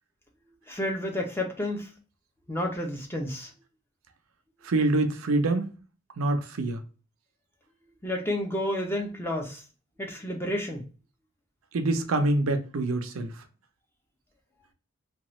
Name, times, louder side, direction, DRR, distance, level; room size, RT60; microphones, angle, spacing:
voice 1, 0.7-1.9 2.5-3.5 8.0-9.6 10.0-10.9, left 1 dB, 10° left, 0.6 m, -30 dB
voice 2, 4.6-5.7 6.2-6.8 11.7-13.3, right 2 dB, 90° right, 0.6 m, -25 dB
2.9 x 2.3 x 2.9 m
head